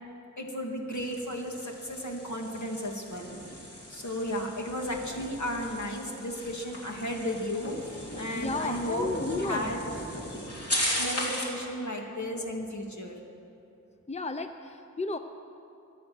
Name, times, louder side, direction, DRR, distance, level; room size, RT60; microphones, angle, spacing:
voice 1, 0.4-3.4 3.9-9.8 10.3-10.7 11.0-13.2, equal, 70° left, 0 dB, 2.2 m, -34 dB
sound 1, 0.9-11.6, left 1 dB, 50° left, 3.2 m, -37 dB
voice 2, 8.3-9.8 14.1-15.2, left 3 dB, 20° left, 8 dB, 0.7 m, -33 dB
24.0 x 9.5 x 6.0 m, 2.8 s
wide cardioid pair, 50°, 30 cm